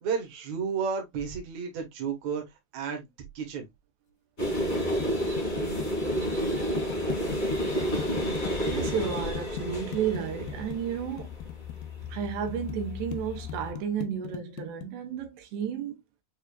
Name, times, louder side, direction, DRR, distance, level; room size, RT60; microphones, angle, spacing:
voice 1, 0.0-2.4 2.7-3.1 3.4-3.7, right 6 dB, 70° right, 1.8 m, -32 dB
sound 1, 4.4-13.7, equal, 60° left, 0.6 m, -31 dB
sound 2, 5.0-12.7 13.1-14.9, left 10 dB, 85° left, 2.2 m, -38 dB
voice 2, 8.6-11.3 12.1-16.0, right 8 dB, 90° right, 2.8 m, -32 dB
6.7 x 2.5 x 2.3 m
omnidirectional pair, 4.7 m